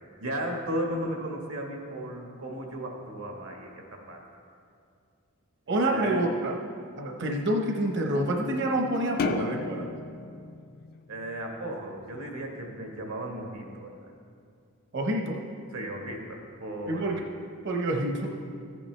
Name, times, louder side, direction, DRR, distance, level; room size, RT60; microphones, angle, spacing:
voice 1, 0.2-4.2 5.7-6.3 11.1-14.1 15.7-17.2, right 1 dB, 85° right, 1 dB, 1.5 m, -35 dB
voice 2, 5.7-6.5 7.0-9.9 14.9-15.4 16.8-17.2 17.6-18.3, right 1 dB, 55° right, 1 dB, 0.8 m, -27 dB
sound 1, 9.2-11.7, left 4 dB, 45° left, 0.4 m, -34 dB
14.5 x 8.4 x 3.2 m, 2.3 s
head